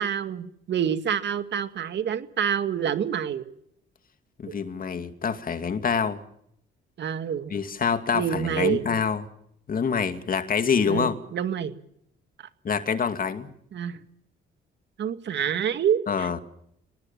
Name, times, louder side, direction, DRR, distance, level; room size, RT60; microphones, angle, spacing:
voice 1, 0.0-3.4 4.5-4.6 7.0-7.5 8.1-9.0 10.9-11.7 13.7-14.0 15.0-16.4, right 8 dB, 60° right, 2.2 m, -27 dB
voice 2, 4.4-6.2 7.5-9.2 9.7-11.2 12.6-13.5 16.1-16.4, left 6 dB, 45° left, 2.5 m, -26 dB
25.5 x 19.5 x 7.5 m
cardioid pair, 90°, 20 cm